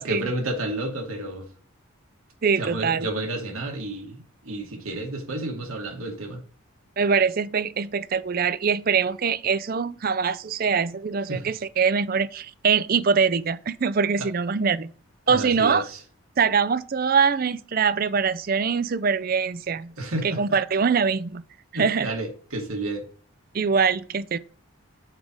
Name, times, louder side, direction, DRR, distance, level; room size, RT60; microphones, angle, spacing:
voice 1, 0.0-1.5 2.6-6.4 11.3-11.5 15.3-16.0 20.0-20.4 21.7-23.0, right 2 dB, 90° right, 2.5 m, -31 dB
voice 2, 2.4-3.1 7.0-14.9 15.3-15.8 16.4-19.9 20.2-21.4 21.8-22.1 23.5-24.4, right 6 dB, 45° right, 0.4 m, -23 dB
7.4 x 4.8 x 5.1 m
head